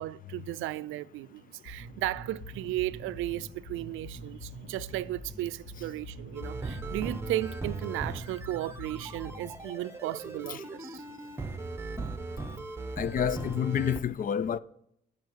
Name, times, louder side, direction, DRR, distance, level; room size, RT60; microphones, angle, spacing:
voice 1, 0.0-11.0, right 15 dB, 85° right, 0.4 m, -35 dB
sound 1, 1.7-9.7, equal, 80° left, 2.6 m, -44 dB
sound 2, 6.3-14.0, right 3 dB, 15° right, 0.9 m, -38 dB
voice 2, 13.0-14.6, left 8 dB, 45° left, 0.4 m, -29 dB
10.5 x 5.7 x 4.6 m
cardioid pair, 90°, 20 cm